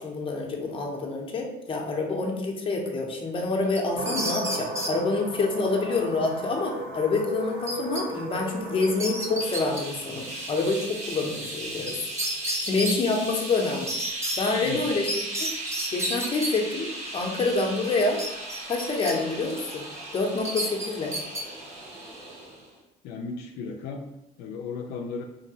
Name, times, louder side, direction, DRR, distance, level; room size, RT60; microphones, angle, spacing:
voice 1, 0.0-12.0 12.6-13.9 14.4-15.1 15.9-18.2 18.6-19.8 20.1-21.1, left 3 dB, 30° left, 1 dB, 0.6 m, -27 dB
sound 1, 3.8-4.9 7.7-8.0 8.4-8.5 8.8-9.8 11.9-12.0 12.2-13.0 13.9-14.4 15.1-16.5 18.2-19.1 19.5-19.7 20.5-21.4, right 1 dB, 15° right, 0.6 m, -30 dB
sound 2, 4.0-12.9, right 1 dB, 65° right, 0.6 m, -36 dB
sound 3, 9.4-22.7, right 1 dB, 45° right, 1.0 m, -37 dB
voice 2, 23.0-24.1 24.4-25.2, left 4 dB, 85° left, 3 dB, 0.4 m, -35 dB
2.9 x 2.6 x 2.8 m, 0.89 s
cardioid pair, 110°, 17 cm